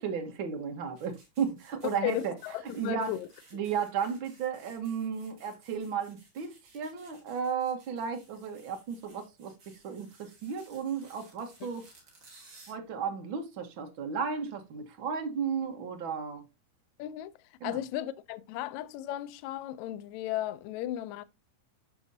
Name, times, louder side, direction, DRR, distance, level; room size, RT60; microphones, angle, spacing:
voice 1, 0.0-2.3 2.8-3.1 3.5-11.9 12.7-16.4 17.6-17.8, right 6 dB, 55° right, 1.5 m, -34 dB
sound 1, 1.0-12.7, right 3 dB, 35° right, 3.1 m, -59 dB
voice 2, 2.0-3.3 3.5-3.6 17.0-17.3 17.6-21.2, left 13 dB, 85° left, 1.6 m, -35 dB
12.0 x 5.4 x 2.7 m
omnidirectional pair, 3.9 m